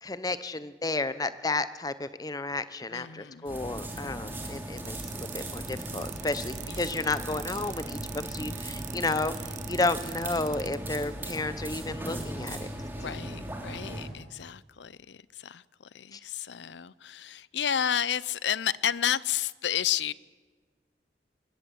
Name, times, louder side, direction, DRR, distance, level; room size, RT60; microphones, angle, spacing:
voice 1, 0.0-12.7 13.0-13.2 16.1-16.2, left 3 dB, 20° left, 0.8 m, -32 dB
voice 2, 2.9-3.5 6.7-6.9 13.0-15.6 15.9-20.1, left 9 dB, 80° left, 0.6 m, -31 dB
sound 1, 3.4-14.1, right 1 dB, 10° right, 2.9 m, -38 dB
sound 2, 4.8-10.8, right 13 dB, 40° right, 0.7 m, -42 dB
22.0 x 20.0 x 7.8 m
head